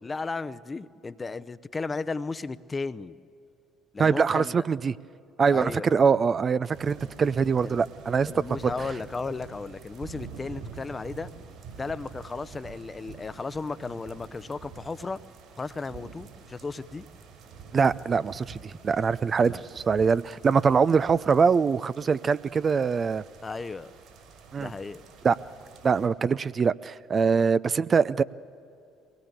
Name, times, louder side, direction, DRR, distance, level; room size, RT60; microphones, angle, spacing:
voice 1, 0.0-3.2 3.9-4.7 5.5-5.9 7.6-7.8 8.3-11.3 11.8-15.2 15.6-17.1 19.4-19.6 23.4-23.9 24.6-25.0, left 4 dB, 25° left, 15 dB, 0.7 m, -35 dB
voice 2, 4.0-4.9 5.4-8.3 8.6-8.7 17.7-23.2 24.5-24.7 25.2-25.4 25.8-28.2, right 5 dB, 40° right, 16 dB, 0.4 m, -23 dB
sound 1, 6.7-26.1, right 5 dB, 65° right, 5.2 m, -47 dB
22.0 x 18.0 x 8.2 m, 2.5 s
hypercardioid pair, 55°, 0 cm